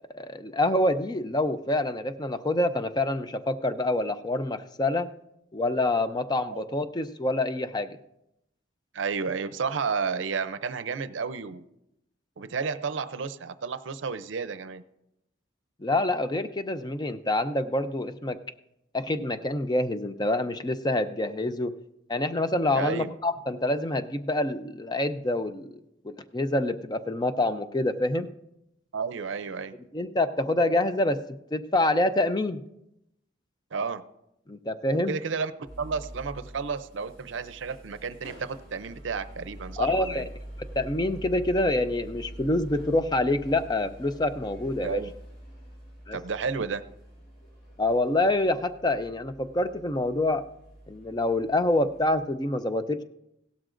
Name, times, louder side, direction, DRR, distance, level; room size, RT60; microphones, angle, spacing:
voice 1, 0.1-5.1 5.5-8.0 15.8-18.4 18.9-21.8 22.1-25.7 26.0-28.3 29.9-31.2 31.5-32.6 34.5-35.2 39.8-40.2 40.8-45.0 46.1-46.2 47.8-50.4 50.9-53.0, left 1 dB, 20° left, 10 dB, 0.5 m, -26 dB
voice 2, 8.9-11.7 12.4-14.8 22.7-23.1 28.9-29.7 33.7-34.0 35.1-35.5 35.8-40.3 44.8-45.1 46.1-46.8, right 5 dB, 75° right, 12 dB, 0.5 m, -32 dB
sound 1, 35.7-52.3, right 1 dB, 45° left, 4.4 m, -45 dB
17.0 x 12.5 x 2.6 m, 0.83 s
head